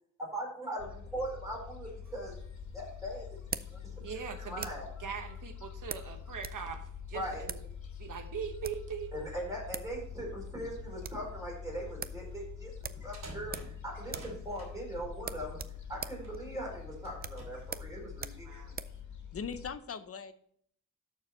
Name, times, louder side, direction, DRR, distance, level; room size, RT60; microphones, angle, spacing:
voice 1, 0.3-2.3 2.7-3.2 3.7-4.9 7.1-7.4 9.1-15.6 15.9-18.5, right 1 dB, 10° right, -3 dB, 4.2 m, -40 dB
Gull seagull, 0.8-19.7, left 7 dB, 65° left, 1.8 m, -45 dB
sound 1, 2.0-5.0 5.9-6.6 6.9-7.0 7.4-7.7 8.4-8.9 9.4-9.5 9.7-10.0 10.3-10.4 10.7-11.3 11.6-11.7 12.0-12.2 12.8-13.8 14.0-14.4 14.7-14.8 15.2-19.0, right 6 dB, 30° right, 0.4 m, -43 dB
voice 2, 4.0-4.7 5.0-7.6 8.0-9.1 18.4-18.8, right 7 dB, 75° right, 6 dB, 1.0 m, -41 dB
sound 2, 12.8-14.7 15.5-16.4 16.9-17.7, right 2 dB, 55° right, 3.1 m, -51 dB
voice 3, 19.3-20.3, left 6 dB, 50° left, 11 dB, 0.6 m, -40 dB
12.5 x 4.8 x 4.3 m, 0.65 s
wide cardioid pair, 135°, 31 cm